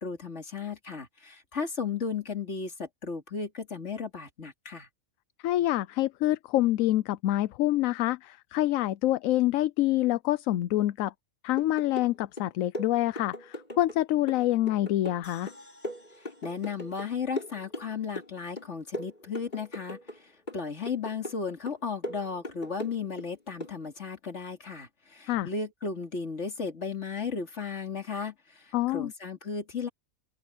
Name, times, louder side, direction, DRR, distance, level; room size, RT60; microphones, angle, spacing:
voice 1, 0.0-4.9 16.2-29.9, left 5 dB, 55° left, 3.0 m, -35 dB
voice 2, 5.4-11.1 11.4-15.5 25.3-25.5 28.7-29.1, left 15 dB, 75° left, 1.0 m, -26 dB
sound 1, 11.6-12.1 12.4-14.0 14.3-17.1 17.4-18.3 18.6-20.2 20.5-21.4 21.7-23.3 23.6-23.8, left 1 dB, 35° left, 5.3 m, -39 dB
sound 2, 15.2-18.4 18.8-18.9, left 1 dB, 10° left, 5.3 m, -57 dB
open air
omnidirectional pair, 1.4 m